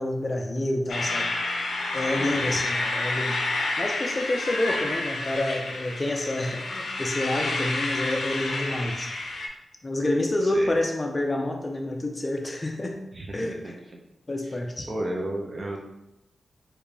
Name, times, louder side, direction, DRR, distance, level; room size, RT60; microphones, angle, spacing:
voice 1, 0.0-1.3 1.9-3.4 3.8-9.1 9.8-13.0 13.3-13.7 14.3-14.9, left 1 dB, 25° left, 2 dB, 0.3 m, -28 dB
sound 1, 0.9-9.5, left 2 dB, 80° left, 0.5 m, -29 dB
voice 2, 2.1-2.5 10.4-10.8 13.1-13.7 14.4-14.6 14.9-15.8, right 1 dB, 40° right, -1 dB, 0.4 m, -34 dB
3.5 x 2.5 x 3.3 m, 0.89 s
wide cardioid pair, 130°, 0 cm